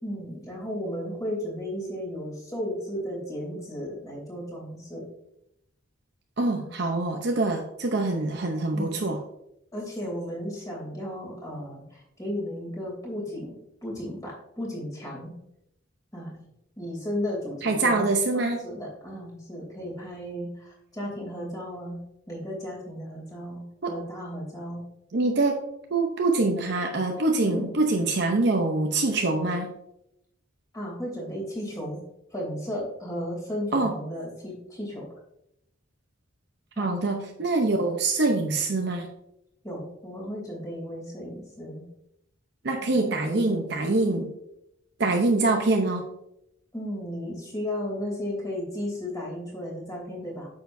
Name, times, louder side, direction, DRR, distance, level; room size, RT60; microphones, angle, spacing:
voice 1, 0.0-5.0 6.5-6.7 8.7-9.1 9.7-13.5 13.8-15.3 16.1-16.3 16.8-18.0 18.3-22.0 22.3-24.8 27.4-27.8 30.7-32.0 32.3-35.1 36.8-36.9 39.6-41.8 42.8-42.9 43.3-43.9 46.7-50.5, equal, 15° left, -3 dB, 2.9 m, -34 dB
voice 2, 6.4-9.2 17.6-18.6 23.8-24.0 25.1-25.6 25.9-29.7 33.7-33.9 36.8-39.1 42.6-44.3 45.0-46.1, right 2 dB, 55° right, 2 dB, 0.8 m, -24 dB
9.3 x 6.9 x 2.6 m, 0.81 s
head